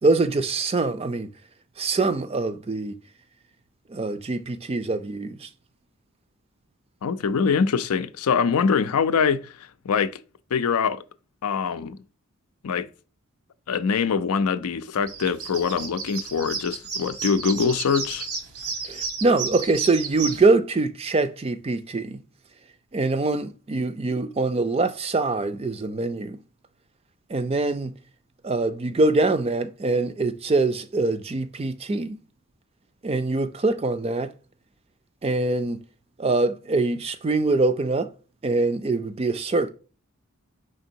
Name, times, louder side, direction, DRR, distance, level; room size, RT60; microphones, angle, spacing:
voice 1, 0.0-1.3 1.8-2.9 3.9-5.5 18.8-22.2 22.9-26.4 27.3-27.9 28.4-32.2 33.0-34.3 35.2-35.8 36.2-38.1 38.4-39.7, right 3 dB, 25° right, 0.4 m, -24 dB
voice 2, 7.0-10.2 10.5-11.0 11.4-12.0 12.6-12.9 13.7-18.3, left 6 dB, 80° left, 0.4 m, -24 dB
sound 1, 14.9-20.4, right 5 dB, 80° right, 1.1 m, -32 dB
5.1 x 3.7 x 2.7 m
head